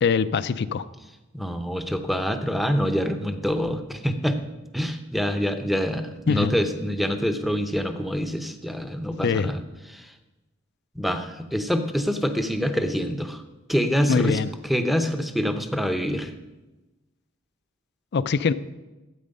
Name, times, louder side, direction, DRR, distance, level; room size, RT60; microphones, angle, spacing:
voice 1, 0.0-0.8 6.3-6.5 9.2-9.5 14.1-14.5 18.1-18.5, left 5 dB, 50° left, 15 dB, 0.4 m, -22 dB
voice 2, 1.3-4.4 4.7-9.6 9.9-10.1 10.9-13.4 13.7-16.3, equal, ahead, 7 dB, 0.7 m, -26 dB
12.5 x 8.4 x 5.3 m, 1.1 s
head